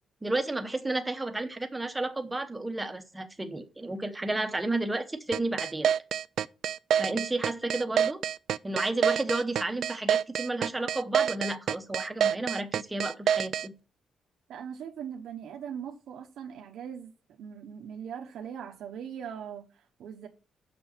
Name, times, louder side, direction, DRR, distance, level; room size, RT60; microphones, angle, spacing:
voice 1, 0.2-5.9 7.0-8.2 8.6-13.7, right 2 dB, 10° right, 0.9 m, -32 dB
sound 1, 5.3-13.7, right 9 dB, 60° right, 0.4 m, -26 dB
voice 2, 14.5-17.1 17.4-20.3, right 8 dB, 75° right, 1.0 m, -40 dB
6.8 x 6.2 x 7.2 m
cardioid pair, 170°, 0 cm